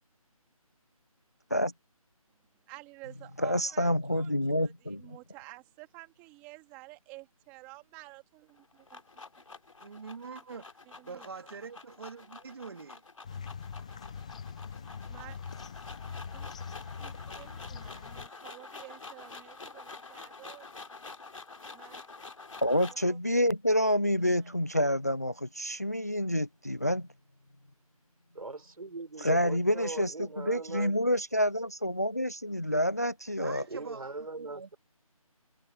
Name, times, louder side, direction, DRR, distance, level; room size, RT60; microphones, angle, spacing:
voice 1, 2.7-9.0 11.0-11.3 15.1-15.4 16.3-16.5 17.0-20.7 21.7-22.0 22.6-22.8 23.1-23.2 24.3-24.6, right 23 dB, 10° right, 2.9 m, -51 dB
voice 2, 3.4-5.2 22.6-27.1 29.2-33.6, equal, 25° left, 0.4 m, -28 dB
sound 1, 8.5-23.1, left 3 dB, 60° left, 3.3 m, -48 dB
voice 3, 9.8-10.6 11.0-13.0 33.4-34.7, right 5 dB, 40° right, 3.0 m, -44 dB
sound 2, 13.2-18.3, left 6 dB, 10° left, 0.8 m, -42 dB
voice 4, 28.3-31.0 33.7-34.8, right 3 dB, 75° right, 5.6 m, -40 dB
figure-of-eight pair, 170°, 19 cm